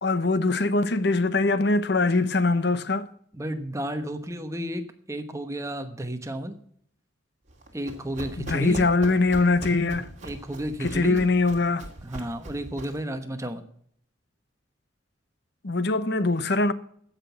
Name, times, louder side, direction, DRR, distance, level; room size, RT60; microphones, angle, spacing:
voice 1, 0.0-3.1 8.4-10.1 10.8-11.9 15.6-16.7, left 3 dB, 50° left, 0.8 m, -22 dB
voice 2, 3.3-4.8 5.1-6.5 7.7-8.9 10.2-11.2 12.0-13.7, right 1 dB, 15° right, 1.1 m, -32 dB
Run, 7.5-13.1, right 1 dB, 35° right, 2.7 m, -40 dB
15.5 x 6.2 x 7.0 m
head